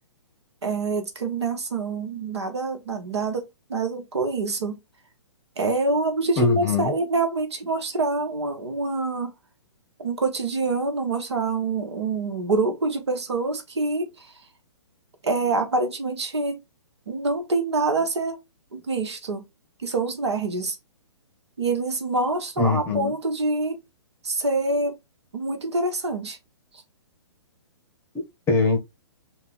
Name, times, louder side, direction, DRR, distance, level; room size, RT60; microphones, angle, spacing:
voice 1, 0.6-4.8 5.6-9.3 10.0-14.3 15.2-16.6 17.1-18.4 18.7-19.4 19.8-20.8 21.6-23.8 24.2-25.0 25.3-26.4, right 3 dB, 65° right, 1.2 m, -26 dB
voice 2, 6.4-6.9 22.6-23.1 28.1-28.8, left 3 dB, 15° left, 1.5 m, -23 dB
3.4 x 2.9 x 3.6 m
figure-of-eight pair, 125°, 15 cm